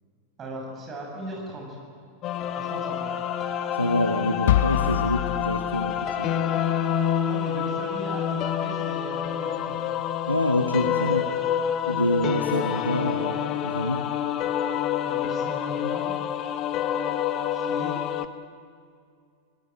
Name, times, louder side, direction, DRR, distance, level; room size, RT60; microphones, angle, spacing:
voice 1, 0.4-1.8 2.6-3.1 4.8-4.9 7.3-9.8 15.0-16.1 17.5-18.0, right 1 dB, 25° right, 0 dB, 7.6 m, -38 dB
sound 1, 2.2-18.3, left 9 dB, 35° left, 1.2 m, -28 dB
voice 2, 3.8-6.4 10.3-11.3 11.9-14.1, left 1 dB, 85° left, 6 dB, 1.1 m, -26 dB
sound 2, 4.5-6.5, left 14 dB, 55° left, 0.5 m, -26 dB
29.5 x 18.5 x 9.1 m, 2.3 s
figure-of-eight pair, 90°, 0 cm